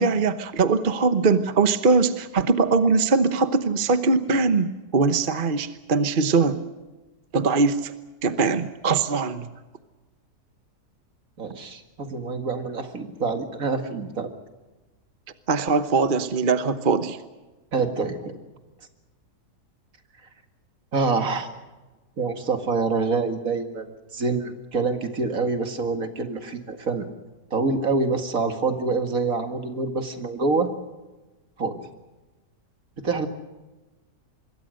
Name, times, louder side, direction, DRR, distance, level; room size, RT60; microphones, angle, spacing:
voice 1, 0.0-6.6 7.3-7.9 8.2-9.5 15.5-17.2, right 4 dB, 35° right, 11 dB, 1.1 m, -21 dB
voice 2, 11.4-14.3 17.7-18.3 20.9-21.5 22.2-23.9 24.1-27.1 27.5-30.7 31.6-31.8 33.0-33.3, right 4 dB, 60° right, 7 dB, 2.4 m, -26 dB
25.5 x 22.0 x 6.5 m, 1.2 s
omnidirectional pair, 1.7 m